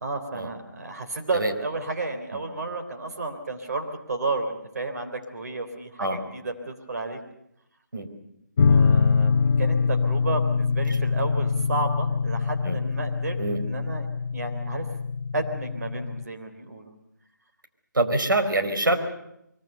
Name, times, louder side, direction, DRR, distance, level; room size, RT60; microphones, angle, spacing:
voice 1, 0.0-7.2 8.7-14.1 14.3-14.9 15.3-16.9, right 2 dB, 55° right, 5 dB, 3.5 m, -32 dB
sound 1, 8.6-16.2, left 5 dB, 35° left, 0.9 m, -24 dB
voice 2, 17.9-19.0, right 2 dB, 85° right, 6 dB, 4.6 m, -25 dB
24.0 x 23.5 x 6.8 m, 0.80 s
figure-of-eight pair, 160°, 11 cm